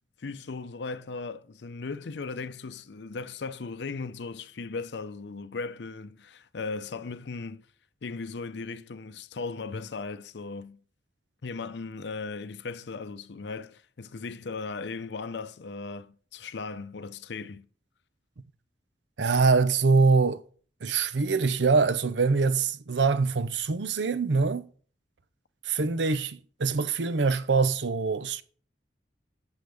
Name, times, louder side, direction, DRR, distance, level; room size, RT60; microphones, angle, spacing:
voice 1, 0.2-7.6 8.0-10.8 11.4-17.7, left 4 dB, 70° left, 0.6 m, -37 dB
voice 2, 19.2-20.4 20.8-24.7 25.6-28.4, right 4 dB, 80° right, 0.6 m, -24 dB
7.8 x 6.9 x 3.4 m
head